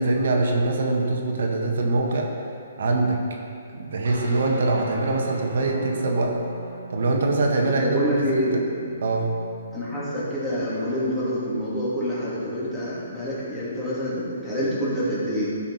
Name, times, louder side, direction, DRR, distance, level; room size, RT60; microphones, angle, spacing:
voice 1, 0.0-2.3 2.8-3.2 3.7-6.3 6.9-8.5 9.0-9.3, right 2 dB, 65° right, 1 dB, 1.4 m, -23 dB
sound 1, 4.0-13.7, right 2 dB, 85° right, 2.2 m, -41 dB
voice 2, 7.6-8.6 9.7-15.5, equal, 10° left, -10 dB, 2.5 m, -27 dB
13.0 x 5.9 x 4.1 m, 2.4 s
hypercardioid pair, 165°, 0 cm